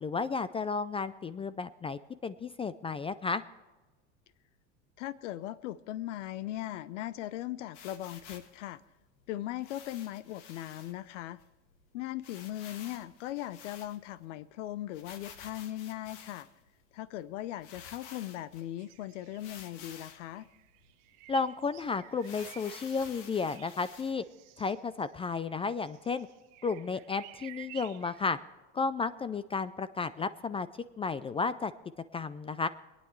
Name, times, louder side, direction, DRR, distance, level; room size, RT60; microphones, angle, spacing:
voice 1, 0.0-3.4 21.3-24.2 24.6-26.3 26.6-28.4 28.7-30.7 31.0-31.7 32.1-32.7, left 4 dB, 15° left, 15 dB, 0.3 m, -33 dB
voice 2, 5.0-8.8 9.3-11.4 11.9-16.5 16.9-20.5, left 13 dB, 80° left, 17 dB, 0.7 m, -39 dB
sound 1, 7.7-8.6 9.6-10.9 11.4-11.5 11.7-11.8 12.2-14.2 14.9-16.6 17.2-17.3 17.6-18.6 19.4-20.3 20.8-20.9 21.3-21.4 22.2-24.1, left 7 dB, 60° left, 1.9 m, -50 dB
sound 2, 18.8-19.9 20.2-28.3, right 16 dB, 60° right, 1.3 m, -53 dB
26.5 x 9.5 x 3.2 m, 1.2 s
supercardioid pair, 105°, 35 cm